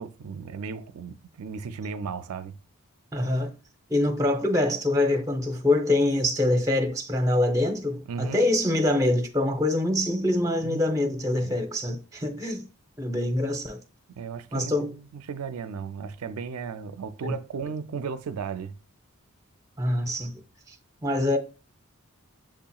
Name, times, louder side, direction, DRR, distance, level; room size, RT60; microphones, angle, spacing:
voice 1, 0.0-2.6 8.1-8.4 10.6-10.8 11.4-11.6 14.2-18.7, right 6 dB, 85° right, 0.4 m, -35 dB
voice 2, 3.1-3.5 3.9-12.6 13.0-13.8 14.5-14.9 17.2-17.3 19.8-20.3 20.7-20.8 21.0-21.4, left 1 dB, 15° right, 0.6 m, -25 dB
7.3 x 2.8 x 2.3 m
head